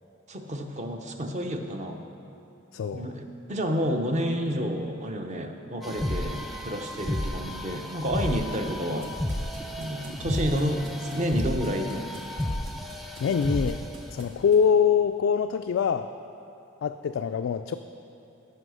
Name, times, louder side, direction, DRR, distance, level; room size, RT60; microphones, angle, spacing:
voice 1, 0.3-2.0 2.9-9.1 9.8-12.1, equal, 35° right, 4 dB, 0.8 m, -30 dB
voice 2, 2.7-3.1 13.2-13.8 14.1-16.1 16.8-17.7, left 7 dB, 70° left, 6 dB, 0.3 m, -24 dB
sound 1, 5.8-14.0, left 1 dB, ahead, 0.5 m, -32 dB
sound 2, 8.1-14.7, right 1 dB, 65° right, 1.6 m, -51 dB
13.0 x 5.6 x 6.3 m, 2.8 s
head